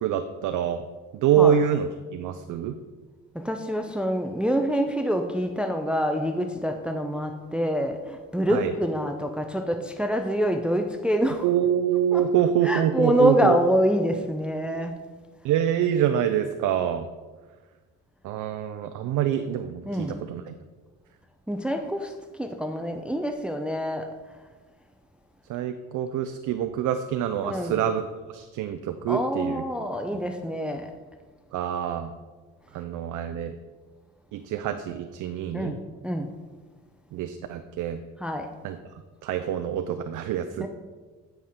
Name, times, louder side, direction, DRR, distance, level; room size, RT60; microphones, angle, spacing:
voice 1, 0.0-0.8 1.1-2.7 8.5-8.7 11.4-13.6 15.4-17.1 18.2-20.5 25.5-29.6 31.5-32.1 32.7-33.5 34.3-35.7 37.1-38.0 38.6-38.8 39.2-40.7, right 9 dB, 80° right, 8 dB, 0.5 m, -26 dB
voice 2, 3.3-11.5 12.1-12.2 12.6-14.9 19.9-20.2 21.5-22.1 22.4-24.1 27.4-27.8 29.1-30.9 35.5-36.3 38.2-38.5 40.6-40.7, equal, 5° right, 5 dB, 0.5 m, -26 dB
9.8 x 5.7 x 3.6 m, 1.4 s
cardioid pair, 90°, 30 cm